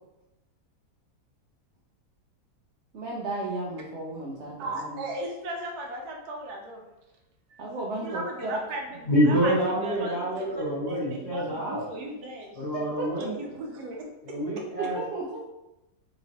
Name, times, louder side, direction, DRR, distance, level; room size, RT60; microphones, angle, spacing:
voice 1, 2.9-5.0 7.6-8.5 12.7-13.1 14.8-15.4, right 2 dB, 65° right, -4 dB, 0.7 m, -34 dB
voice 2, 4.6-6.8 7.5-7.6 8.0-12.8 13.2-14.1, right 1 dB, 85° right, 0 dB, 1.2 m, -37 dB
voice 3, 9.0-11.8 12.5-13.3 14.2-15.0, equal, 30° left, -9 dB, 1.4 m, -26 dB
3.1 x 2.9 x 2.8 m, 0.95 s
omnidirectional pair, 1.6 m